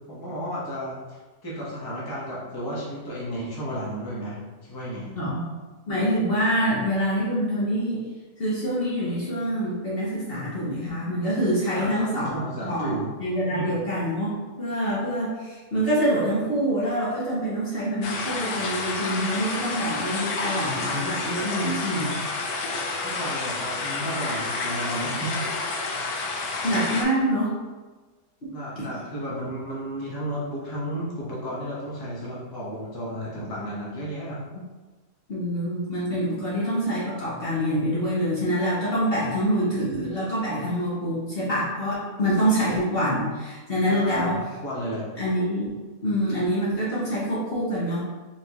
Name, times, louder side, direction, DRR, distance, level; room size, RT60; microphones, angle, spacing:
voice 1, 0.1-5.2 11.7-13.1 13.5-13.8 23.0-25.4 28.5-34.4 43.9-44.3 44.6-45.1, equal, 15° left, -7 dB, 0.9 m, -33 dB
voice 2, 5.1-5.5 5.9-8.1 8.4-12.3 12.6-12.9 13.2-22.1 26.6-27.5 28.4-28.5 28.8-28.9 35.3-44.4 45.2-45.7 46.0-48.0, equal, 40° left, -9 dB, 1.1 m, -26 dB
sound 1, 18.0-27.0, left 3 dB, 70° left, 1.1 m, -29 dB
4.5 x 3.4 x 2.9 m, 1.3 s
omnidirectional pair, 1.7 m